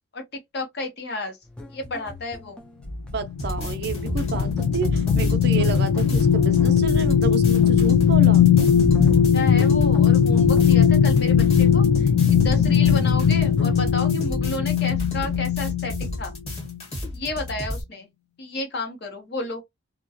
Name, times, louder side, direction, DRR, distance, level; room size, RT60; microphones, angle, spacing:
voice 1, 0.1-1.4 1.7-2.6 9.0-16.3 17.1-18.1 18.4-19.6, left 2 dB, 55° left, 0.7 m, -32 dB
sound 1, 1.4-13.8, equal, 5° left, 0.3 m, -36 dB
voice 2, 3.0-8.5 12.9-13.1, right 5 dB, 55° right, 0.5 m, -30 dB
sound 2, 3.2-16.2 16.6-16.8, left 7 dB, 80° left, 0.4 m, -19 dB
sound 3, 3.4-17.8, left 1 dB, 30° left, 1.1 m, -33 dB
2.3 x 2.1 x 2.6 m
head